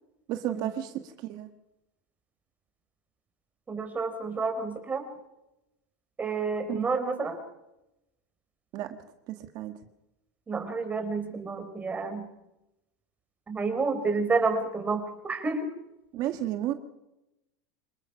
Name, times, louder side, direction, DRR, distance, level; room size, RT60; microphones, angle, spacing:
voice 1, 0.3-1.5 6.7-6.8 8.7-8.9 9.3-9.7 16.1-16.7, right 12 dB, 45° right, 7 dB, 1.6 m, -32 dB
voice 2, 3.7-5.0 6.2-7.4 10.5-12.2 13.5-15.7, right 4 dB, 15° right, 6 dB, 4.5 m, -29 dB
26.5 x 21.0 x 5.8 m, 0.91 s
supercardioid pair, 135°, 9 cm